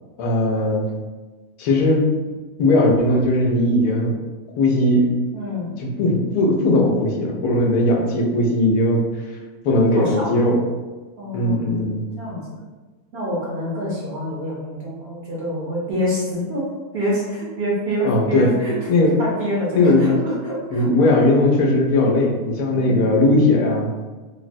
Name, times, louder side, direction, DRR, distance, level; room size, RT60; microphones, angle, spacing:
voice 1, 0.2-0.8 1.6-2.0 2.6-4.2 4.6-5.1 5.8-9.0 9.6-10.6 11.3-12.0 18.0-18.5 18.9-19.2 19.7-20.2 20.7-23.9, left 1 dB, 90° left, -1 dB, 1.1 m, -18 dB
voice 2, 5.3-5.7 9.9-10.3 11.2-11.7 12.2-12.6 13.1-16.7 16.9-18.9 19.2-21.1 22.7-23.1, equal, 60° right, -5 dB, 0.7 m, -26 dB
3.4 x 2.0 x 2.5 m, 1.3 s
omnidirectional pair, 1.6 m